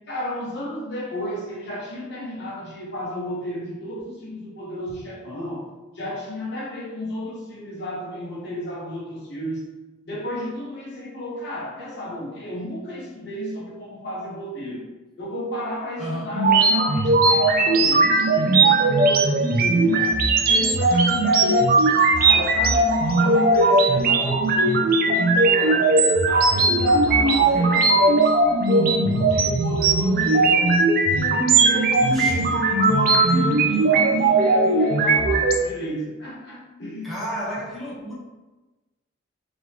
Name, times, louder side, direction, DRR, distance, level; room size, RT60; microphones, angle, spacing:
voice 1, 0.1-5.6 5.9-9.7 10.0-14.9 15.2-20.1 20.5-25.9 26.2-28.3 28.7-30.8 31.1-37.2, left 1 dB, 60° left, -5 dB, 1.1 m, -32 dB
voice 2, 16.0-16.3 32.1-32.6 37.0-38.1, equal, ahead, -8 dB, 0.9 m, -32 dB
sound 1, 16.4-35.6, right 3 dB, 50° right, 0.4 m, -18 dB
3.7 x 3.0 x 2.9 m, 1.1 s
head